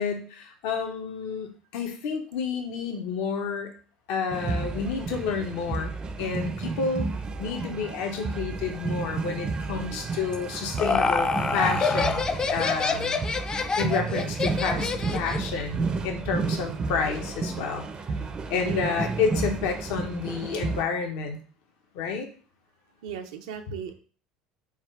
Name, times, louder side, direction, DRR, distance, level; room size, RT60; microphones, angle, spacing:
voice 1, 0.0-3.7 4.1-5.9 6.2-7.1 7.4-13.2 13.8-17.9 18.5-21.4 21.9-22.3, left 5 dB, 70° left, 4 dB, 0.7 m, -30 dB
sound 1, 4.3-20.8, right 4 dB, 30° right, 0.5 m, -32 dB
Laughter, 10.3-15.5, left 4 dB, 25° left, 0.4 m, -27 dB
voice 2, 18.6-19.0 23.0-23.9, right 8 dB, 80° right, 7 dB, 0.5 m, -36 dB
3.6 x 2.3 x 4.4 m, 0.40 s
hypercardioid pair, 80°, 3 cm